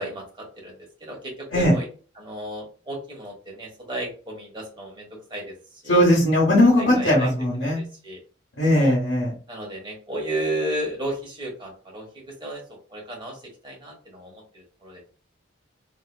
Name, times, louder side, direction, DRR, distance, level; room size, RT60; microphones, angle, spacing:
voice 1, 0.0-1.9 2.1-5.5 5.8-6.0 6.8-7.3 7.6-8.2 8.8-9.0 9.5-12.6 12.9-13.4 13.6-15.0, right 1 dB, 25° right, -2 dB, 1.3 m, -33 dB
voice 2, 5.9-7.8 8.6-9.3, left 1 dB, 60° left, -4 dB, 1.1 m, -19 dB
3.7 x 2.8 x 2.2 m, 0.37 s
head